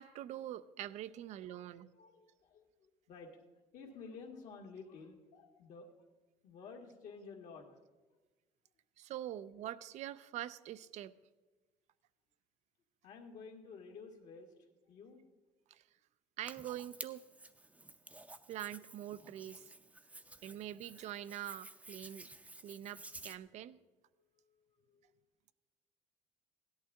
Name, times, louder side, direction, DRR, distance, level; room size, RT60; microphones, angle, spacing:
voice 1, 0.0-1.9 9.0-11.2 15.7-15.8 16.4-17.2 18.5-19.7 20.4-22.3 22.6-23.8, right 12 dB, 60° right, 15 dB, 0.5 m, -44 dB
voice 2, 1.5-3.4 3.7-5.9 6.4-7.7 13.0-14.5 14.9-15.2 20.1-20.4 24.2-25.1, left 4 dB, 65° left, 1 dB, 1.9 m, -53 dB
Hands, 16.4-23.4, right 2 dB, 10° right, 0.6 m, -53 dB
16.5 x 11.0 x 3.6 m, 1.2 s
supercardioid pair, 90°, 13 cm